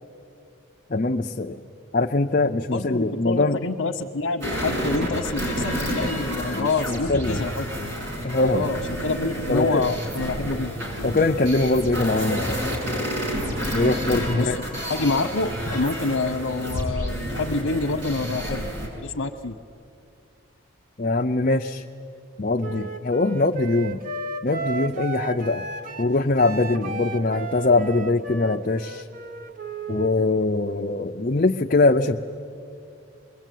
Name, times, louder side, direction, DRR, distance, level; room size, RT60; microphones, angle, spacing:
voice 1, 0.9-1.6 1.9-3.6 6.5-7.4 8.2-8.7 9.5-9.8 11.0-12.6 13.7-14.6 21.0-21.8 22.4-24.0 24.4-25.6 26.0-29.0 29.9-32.2, left 2 dB, 40° left, 3 dB, 0.6 m, -22 dB
voice 2, 2.7-7.9 8.5-10.7 14.3-14.5 14.9-18.7 18.9-19.6, left 3 dB, 80° left, 2 dB, 0.9 m, -27 dB
sound 1, 4.4-18.9, equal, 60° right, 7.3 m, -29 dB
Wind instrument woodwind instrument, 22.6-30.1, right 3 dB, 40° right, 0.8 m, -34 dB
26.0 x 22.0 x 9.3 m, 2.6 s
head